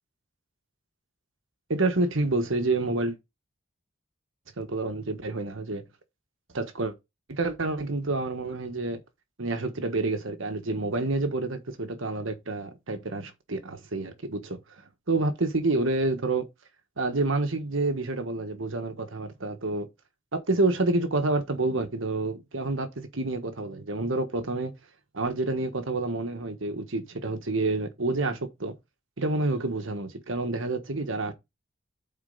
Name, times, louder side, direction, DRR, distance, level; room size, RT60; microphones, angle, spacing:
voice 1, 1.7-3.2 4.6-5.8 6.5-6.9 7.3-9.0 9.4-14.6 15.1-16.5 17.0-19.9 20.3-24.7 25.1-28.7 29.2-31.3, right 2 dB, 75° right, 1.3 m, -28 dB
8.8 x 4.4 x 4.0 m
head